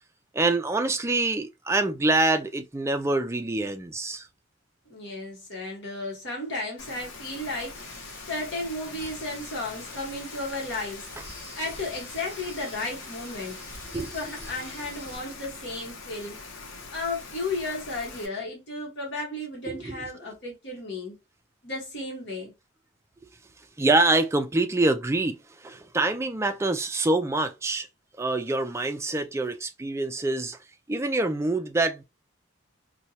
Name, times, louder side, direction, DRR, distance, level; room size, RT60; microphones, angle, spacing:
voice 1, 0.3-4.3 13.9-14.2 19.7-19.9 23.8-27.9 28.2-30.6 30.9-32.0, right 2 dB, 15° right, 0.3 m, -25 dB
voice 2, 4.9-11.1 11.5-13.6 13.9-16.4 16.9-21.2 21.6-22.5, left 2 dB, 55° left, 1.2 m, -34 dB
Rain, 6.8-18.3, left 4 dB, 75° left, 0.9 m, -43 dB
sound 1, 7.7-15.2, left 1 dB, 40° left, 2.2 m, -46 dB
4.4 x 2.2 x 2.7 m
head